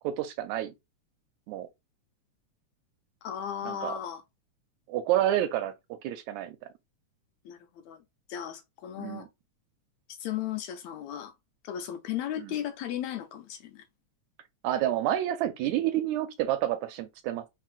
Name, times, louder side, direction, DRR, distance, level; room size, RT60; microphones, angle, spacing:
voice 1, 0.0-0.7 1.5-1.7 3.7-3.9 4.9-5.7 6.0-6.6 9.0-9.3 12.4-12.5 14.6-17.5, right 12 dB, 80° right, 1.8 m, -29 dB
voice 2, 3.2-4.2 7.4-8.0 8.3-9.3 10.1-11.3 11.6-13.9, left 10 dB, 80° left, 1.7 m, -36 dB
4.4 x 3.8 x 2.4 m
omnidirectional pair, 3.5 m